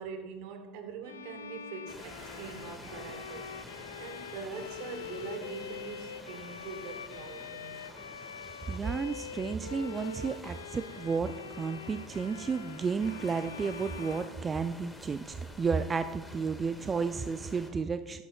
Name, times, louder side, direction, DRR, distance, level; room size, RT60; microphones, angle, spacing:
voice 1, 0.0-3.5 4.0-8.0, right 5 dB, 65° right, 1.1 m, -43 dB
Bowed string instrument, 1.0-15.1, left 6 dB, 90° left, 0.3 m, -44 dB
sound 1, 1.9-17.7, left 1 dB, 10° left, 1.8 m, -49 dB
voice 2, 8.7-15.2 15.6-18.2, right 5 dB, 30° right, 0.3 m, -32 dB
14.0 x 10.0 x 2.3 m
hypercardioid pair, 75°, 0 cm